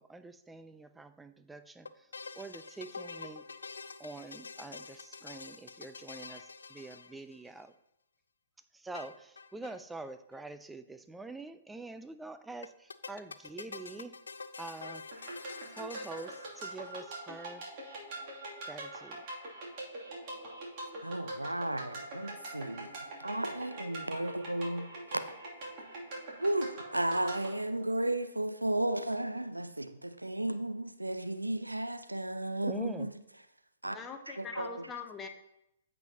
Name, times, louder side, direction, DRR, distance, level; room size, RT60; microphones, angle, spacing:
voice 1, 0.0-1.9 2.3-3.4 4.0-7.7 8.8-12.7 13.1-14.1 14.6-15.0 15.8-17.6 18.7-19.2 32.7-33.1, right 3 dB, 5° right, 0.4 m, -45 dB
sound 1, 1.8-7.6 8.9-9.8 10.0-10.1 10.3-10.4 12.6-17.1, left 4 dB, 70° left, 0.5 m, -47 dB
sound 2, 15.1-27.5, right 2 dB, 40° right, 2.6 m, -43 dB
voice 2, 21.0-25.3 26.4-33.1 33.8-34.0 34.3-34.9, right 1 dB, 85° right, 0.7 m, -34 dB
voice 3, 33.8-35.3, left 5 dB, 15° left, 0.9 m, -43 dB
15.0 x 5.4 x 2.8 m
figure-of-eight pair, 115°, 0 cm